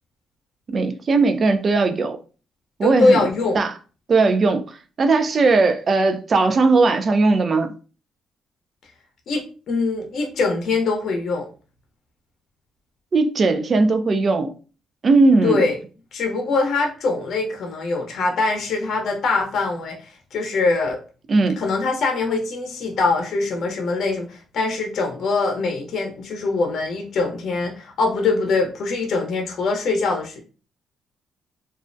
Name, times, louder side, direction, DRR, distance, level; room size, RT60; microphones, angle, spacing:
voice 1, 0.7-2.2 2.8-3.2 3.5-3.7 4.1-7.7 13.1-14.5 15.0-15.6 21.3-21.6, right 3 dB, 45° right, 0.4 m, -18 dB
voice 2, 2.8-3.6 9.3-11.5 15.4-15.8 16.1-20.0 20.3-21.0 21.6-30.4, left 3 dB, 65° left, 0.6 m, -23 dB
2.4 x 2.1 x 2.5 m
cardioid pair, 90°, 0 cm